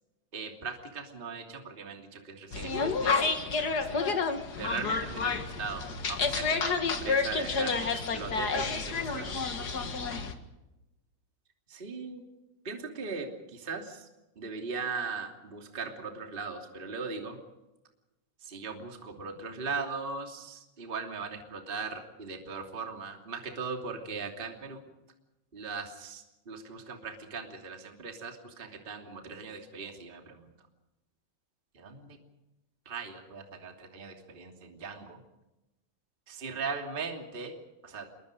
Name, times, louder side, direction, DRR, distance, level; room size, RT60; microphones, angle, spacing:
voice 1, 0.3-4.0 4.6-9.4 11.7-12.2 12.6-14.1 14.4-17.4 18.4-24.8 25.5-30.5 31.7-32.2 32.8-35.2 36.3-37.6 37.8-38.1, right 4 dB, 15° right, 3 dB, 2.2 m, -39 dB
sound 1, 2.5-10.3, left 4 dB, 60° left, 1.0 m, -30 dB
27.5 x 22.0 x 5.2 m, 0.99 s
omnidirectional pair, 4.5 m